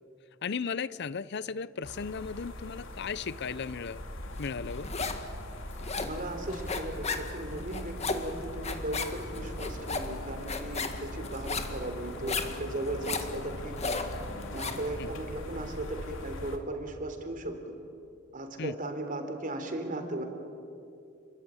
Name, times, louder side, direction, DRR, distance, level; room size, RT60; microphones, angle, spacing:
voice 1, 0.4-4.0 4.4-4.9 15.0-15.1 18.6-18.7, left 5 dB, 60° left, 18 dB, 0.6 m, -35 dB
sound 1, 1.8-16.6, left 1 dB, 85° left, 2.6 m, -41 dB
sound 2, 4.4-5.3 5.6-14.9, left 4 dB, 35° left, 1.9 m, -35 dB
voice 2, 6.0-14.0 14.5-17.6 18.3-20.2, right 1 dB, 45° right, 6 dB, 3.6 m, -37 dB
29.0 x 22.5 x 9.0 m, 2.6 s
head